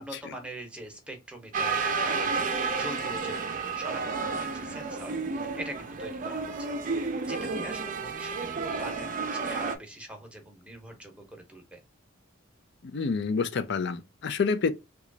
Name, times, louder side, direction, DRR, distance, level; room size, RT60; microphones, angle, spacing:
voice 1, 0.0-6.7 7.2-11.8, right 1 dB, 5° right, 0.8 m, -43 dB
sound 1, 1.5-9.8, right 4 dB, 40° right, 0.5 m, -31 dB
voice 2, 12.8-14.7, left 5 dB, 60° left, 0.4 m, -28 dB
3.0 x 2.3 x 3.8 m
head